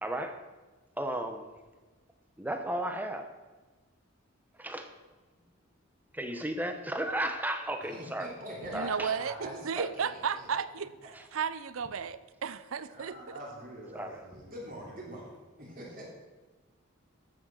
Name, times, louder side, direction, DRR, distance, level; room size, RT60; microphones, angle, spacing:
voice 1, 0.0-0.4 1.0-1.5 2.4-3.3 4.6-4.9 6.1-8.3 8.7-9.1 9.8-9.9 13.9-14.2, right 1 dB, 10° right, 6 dB, 0.9 m, -34 dB
voice 2, 7.8-10.6 12.9-16.1, right 1 dB, 40° right, -4 dB, 3.3 m, -44 dB
voice 3, 8.6-13.2, right 6 dB, 85° right, 15 dB, 0.6 m, -34 dB
13.5 x 6.6 x 6.4 m, 1.3 s
head